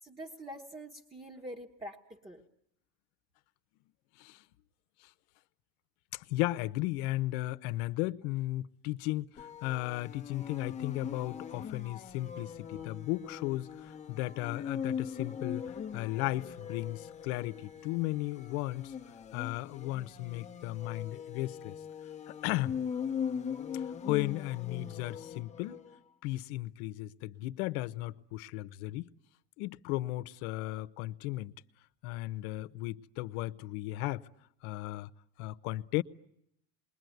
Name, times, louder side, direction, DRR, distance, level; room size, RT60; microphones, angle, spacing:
voice 1, 0.0-2.4 12.7-12.8, equal, 10° right, 1.4 m, -45 dB
voice 2, 6.1-18.9 19.3-21.8 22.3-22.7 23.7-25.8 26.2-29.1 29.6-31.5 32.0-34.2 34.6-35.1 35.4-36.0, left 17 dB, 75° left, 1.0 m, -35 dB
sound 1, 9.4-26.0, left 7 dB, 15° left, 1.0 m, -41 dB
27.5 x 21.5 x 9.3 m
supercardioid pair, 135°, 44 cm